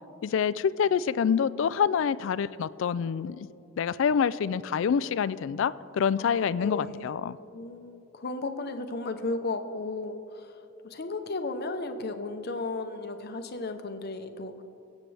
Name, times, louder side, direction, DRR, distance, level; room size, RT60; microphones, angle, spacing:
voice 1, 0.2-3.5 3.8-7.4, left 7 dB, 65° left, 17 dB, 0.3 m, -26 dB
voice 2, 6.2-7.1 7.5-10.6 10.8-14.5, left 3 dB, 50° left, 7 dB, 0.8 m, -34 dB
23.0 x 8.3 x 3.4 m, 2.9 s
head